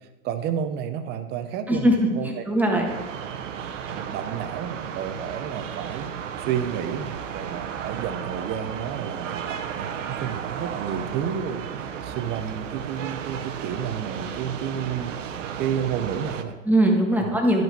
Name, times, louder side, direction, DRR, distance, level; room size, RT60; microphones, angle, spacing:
voice 1, 0.2-2.4 3.9-6.1 6.4-15.1 15.6-16.6 17.2-17.3, right 8 dB, 25° right, 9 dB, 0.8 m, -31 dB
voice 2, 1.7-2.8 16.6-17.6, right 1 dB, 5° right, 0 dB, 1.4 m, -21 dB
sound 1, 2.9-16.4, right 8 dB, 65° right, 1.0 m, -34 dB
12.0 x 5.6 x 4.5 m, 1.2 s
hypercardioid pair, 125°, 41 cm